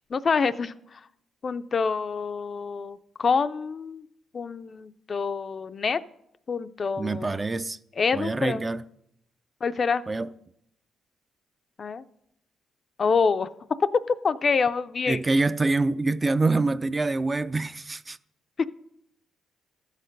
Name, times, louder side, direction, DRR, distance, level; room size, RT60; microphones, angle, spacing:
voice 1, 0.1-1.0 1.4-4.1 4.3-6.0 6.5-7.4 8.0-8.6 9.6-10.0 11.8-12.0 13.0-13.5 13.9-15.2 18.6-18.7, left 5 dB, 40° left, 0.4 m, -26 dB
voice 2, 7.0-7.8 8.1-8.8 10.1-10.3 15.1-18.2, right 3 dB, 25° right, 0.4 m, -25 dB
13.0 x 6.5 x 5.3 m
cardioid pair, 90°, 0 cm